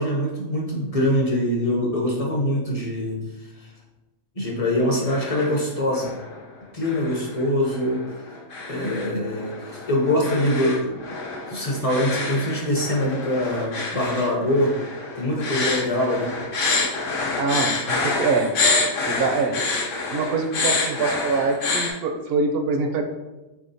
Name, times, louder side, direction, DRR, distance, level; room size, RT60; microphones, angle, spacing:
voice 1, 0.0-3.7 4.4-6.1 6.7-8.0 8.7-10.9 11.5-14.7 15.2-16.3, left 1 dB, 40° left, -2 dB, 0.6 m, -23 dB
sound 1, 4.8-5.6 5.9-6.4 6.8-21.9, left 3 dB, 80° left, 1.1 m, -27 dB
voice 2, 17.4-18.5 19.1-19.7 20.1-23.1, right 4 dB, 65° right, 5 dB, 0.6 m, -24 dB
4.4 x 3.5 x 2.6 m, 1.1 s
omnidirectional pair, 1.3 m